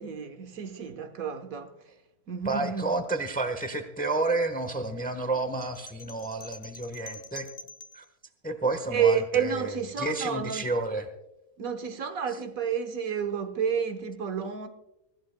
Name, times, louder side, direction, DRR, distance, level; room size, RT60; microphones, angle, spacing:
voice 1, 0.0-1.7 2.3-2.9 8.9-10.7 11.6-14.7, right 7 dB, 70° right, 1.5 m, -30 dB
voice 2, 2.4-7.5 7.9-8.0 8.4-9.7 10.0-11.1, right 2 dB, 5° left, 0.9 m, -30 dB
sound 1, 5.6-8.1, left 3 dB, 55° left, 0.9 m, -46 dB
25.0 x 14.5 x 2.2 m
omnidirectional pair, 1.5 m